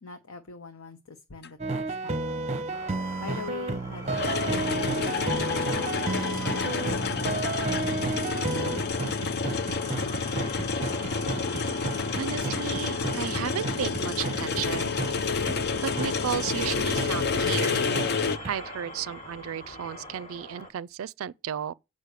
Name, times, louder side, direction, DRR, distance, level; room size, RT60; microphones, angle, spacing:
voice 1, 0.0-2.4 3.2-8.8, left 5 dB, 85° left, 0.9 m, -45 dB
sound 1, 1.4-1.5 4.1-18.4, left 4 dB, 50° left, 0.6 m, -29 dB
sound 2, 1.6-14.7 15.0-15.1 15.5-15.6 16.0-16.1 16.5-16.6 17.0-17.1 17.5-17.6 17.9-18.1 18.4-18.5, right 3 dB, 30° right, 0.7 m, -31 dB
sound 3, 2.7-20.7, left 1 dB, 30° left, 1.5 m, -44 dB
voice 2, 12.2-15.2 15.8-17.8 18.5-21.7, right 9 dB, 75° right, 0.4 m, -34 dB
8.2 x 5.4 x 6.4 m
head